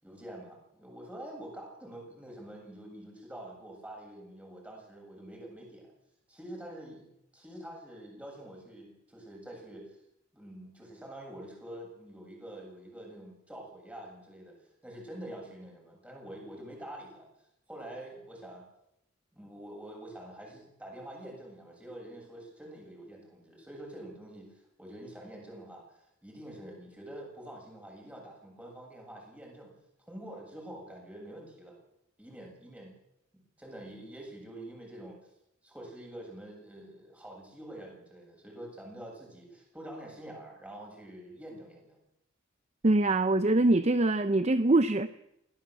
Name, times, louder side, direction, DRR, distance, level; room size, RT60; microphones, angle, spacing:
voice 1, 0.0-5.9 6.3-10.0 10.3-14.6 14.8-17.3 17.7-18.6 19.3-29.7 30.1-31.8 32.2-32.9 33.6-35.2 35.6-42.0, right 1 dB, 5° right, 0 dB, 7.6 m, -46 dB
voice 2, 42.8-45.1, right 2 dB, 30° right, 12 dB, 0.7 m, -24 dB
21.5 x 17.5 x 7.7 m, 0.82 s
head